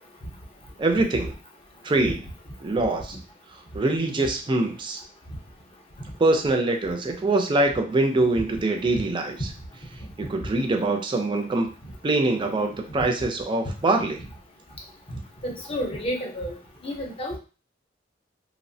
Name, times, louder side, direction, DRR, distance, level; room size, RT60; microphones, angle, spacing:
voice 1, 0.8-1.3 1.8-2.2 2.6-3.2 3.7-5.0 6.2-9.5 10.2-11.7 12.0-14.2, right 2 dB, 25° right, 4 dB, 0.4 m, -24 dB
voice 2, 15.4-16.5 16.8-17.4, equal, 30° left, 0 dB, 0.6 m, -30 dB
2.8 x 2.0 x 2.6 m, 0.34 s
head